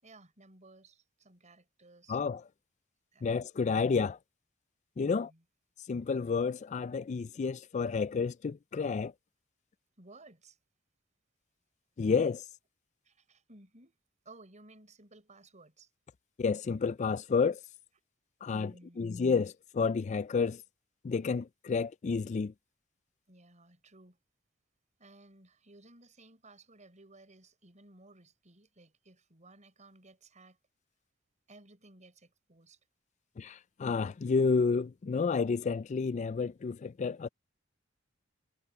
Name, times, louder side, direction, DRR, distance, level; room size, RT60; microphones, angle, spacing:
voice 1, 0.0-2.2 3.1-3.3 5.0-5.4 10.0-10.6 13.0-14.0 14.2-15.9 18.5-19.2 23.3-24.2 25.0-30.6 31.5-32.8, right 2 dB, 35° right, 5.7 m, -57 dB
voice 2, 2.1-2.4 3.2-4.2 5.0-5.3 5.9-9.1 12.0-12.4 16.4-17.6 18.4-18.7 19.0-20.6 21.0-22.5 33.4-37.3, left 5 dB, 35° left, 0.3 m, -30 dB
head